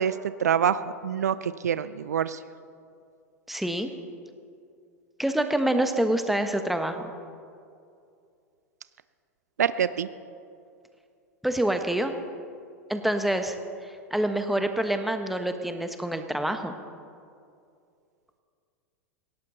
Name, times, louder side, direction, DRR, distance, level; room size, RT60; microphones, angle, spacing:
voice 1, 0.0-2.4 9.6-10.1, right 8 dB, 75° right, 15 dB, 0.5 m, -26 dB
voice 2, 3.5-3.9 5.2-7.1 11.4-12.1 12.9-13.6 13.8-16.7, right 1 dB, ahead, 7 dB, 1.3 m, -26 dB
19.0 x 17.0 x 4.1 m, 2.4 s
figure-of-eight pair, 90°, 9 cm